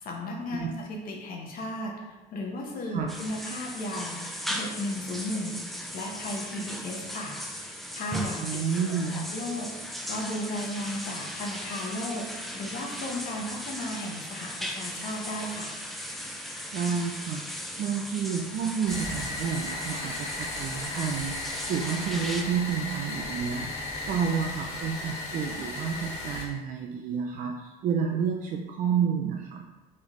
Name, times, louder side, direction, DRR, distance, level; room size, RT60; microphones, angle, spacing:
voice 1, 0.0-5.6 5.9-7.3 7.9-8.6 9.1-9.7 10.1-12.2 12.5-15.7, left 1 dB, 55° left, -1 dB, 0.9 m, -35 dB
sound 1, 3.1-22.4, equal, ahead, 0.5 m, -37 dB
voice 2, 8.4-9.3 16.7-17.4 17.8-29.6, right 6 dB, 55° right, 2 dB, 0.4 m, -30 dB
sound 2, 18.9-26.4, left 2 dB, 80° left, 1.2 m, -35 dB
4.2 x 3.4 x 3.0 m, 1.2 s
cardioid pair, 110°, 17 cm